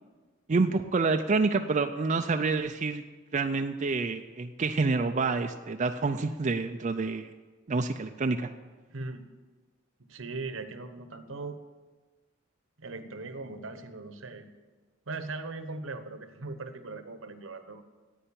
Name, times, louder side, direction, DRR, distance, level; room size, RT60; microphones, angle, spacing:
voice 1, 0.5-3.0 3.3-7.3 7.7-8.5, right 3 dB, 35° right, 6 dB, 0.5 m, -28 dB
voice 2, 8.9-9.3 10.1-11.6 12.8-14.5 15.1-17.9, right 3 dB, 75° right, 10 dB, 1.0 m, -39 dB
10.0 x 9.1 x 8.6 m, 1.3 s
head